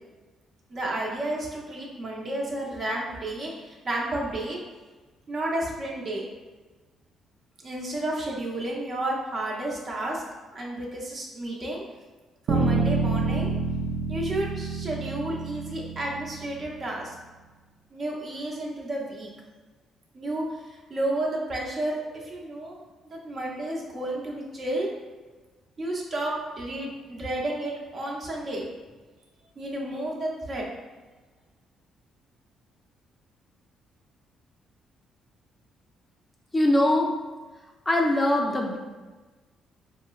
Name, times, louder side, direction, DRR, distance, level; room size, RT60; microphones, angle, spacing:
voice 1, 0.7-4.6 5.3-6.3 7.6-10.2 10.5-11.8 12.5-13.5 14.1-17.1 17.9-19.3 20.1-22.8 23.1-24.9 25.8-28.6 29.6-30.6, right 1 dB, 45° right, -3 dB, 0.7 m, -31 dB
sound 1, 12.5-16.8, right 4 dB, 80° right, 0.4 m, -28 dB
voice 2, 36.5-37.1 37.9-38.8, left 1 dB, 20° left, 0 dB, 0.4 m, -22 dB
4.3 x 2.0 x 2.3 m, 1.3 s
cardioid pair, 85°, 0 cm